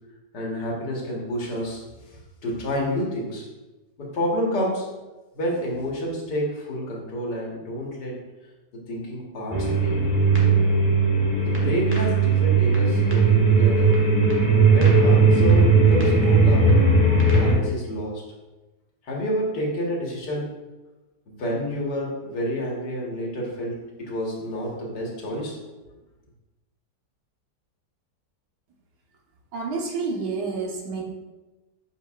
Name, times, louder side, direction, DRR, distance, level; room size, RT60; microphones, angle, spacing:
voice 1, 0.3-1.8 2.4-3.4 4.0-4.9 5.3-8.1 8.9-9.9 11.4-13.9 14.5-16.7 17.3-18.2 19.0-20.5 21.3-25.5, equal, 80° left, -2 dB, 2.0 m, -29 dB
sound 1, 9.5-17.5, right 4 dB, 10° right, 1.1 m, -18 dB
voice 2, 29.5-31.0, right 4 dB, 75° right, 0 dB, 1.6 m, -29 dB
7.8 x 5.4 x 2.4 m, 1.1 s
omnidirectional pair, 1.8 m